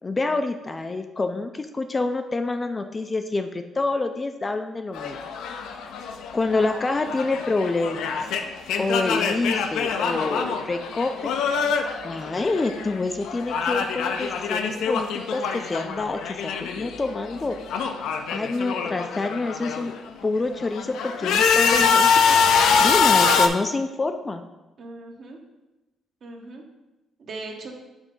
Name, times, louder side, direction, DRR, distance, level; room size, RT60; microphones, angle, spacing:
voice 1, 0.0-5.2 6.3-8.1 8.8-11.3 12.0-17.6 18.3-19.9 20.2-22.4 22.8-24.4, left 3 dB, 25° left, 7 dB, 0.4 m, -27 dB
sound 1, 5.0-13.0 13.2-17.0 17.3-19.9 20.5-23.5, left 5 dB, 80° left, 0.5 m, -24 dB
voice 2, 24.8-25.4 26.2-26.6 27.2-27.7, right 3 dB, 50° right, 2 dB, 1.1 m, -39 dB
6.1 x 3.2 x 5.3 m, 1.0 s
cardioid pair, 115°, 0 cm